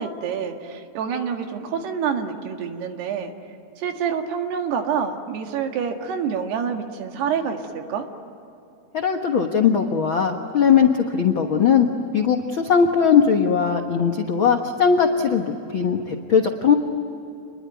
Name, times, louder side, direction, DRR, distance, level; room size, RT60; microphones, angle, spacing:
voice 1, 0.0-3.3 3.8-8.1, right 7 dB, 85° right, 4 dB, 3.9 m, -27 dB
voice 2, 8.9-11.9 12.1-16.7, left 7 dB, 80° left, 4 dB, 1.1 m, -19 dB
28.5 x 21.5 x 9.3 m, 2.8 s
omnidirectional pair, 4.6 m